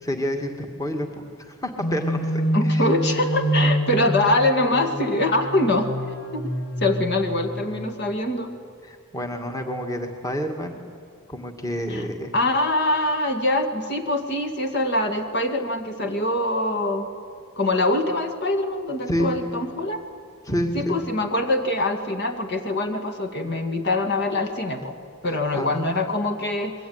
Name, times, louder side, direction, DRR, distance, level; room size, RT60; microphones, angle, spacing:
voice 1, 0.0-2.9 8.8-10.8 11.3-12.3 19.1-19.4 20.4-21.0 25.5-26.1, equal, 15° left, 4 dB, 2.1 m, -29 dB
sound 1, 1.8-8.0, equal, 80° left, 4.3 m, -26 dB
voice 2, 2.5-5.9 6.3-6.5 6.8-8.5 11.9-12.0 12.3-17.1 17.6-20.0 20.7-25.0 25.2-26.7, left 1 dB, 50° left, 6 dB, 2.3 m, -24 dB
27.0 x 22.5 x 9.6 m, 2.2 s
head